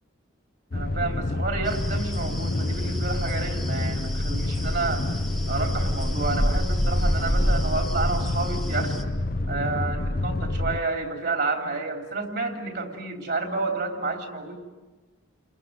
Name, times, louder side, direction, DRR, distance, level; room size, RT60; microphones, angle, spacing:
sound 1, 0.7-10.8, left 2 dB, 45° left, 0.8 m, -28 dB
voice 1, 0.7-5.0 5.5-9.0 9.5-14.5, right 3 dB, 55° right, 2 dB, 3.7 m, -30 dB
sound 2, 1.6-9.0, equal, ahead, 1.4 m, -29 dB
30.0 x 22.0 x 7.9 m, 1.2 s
head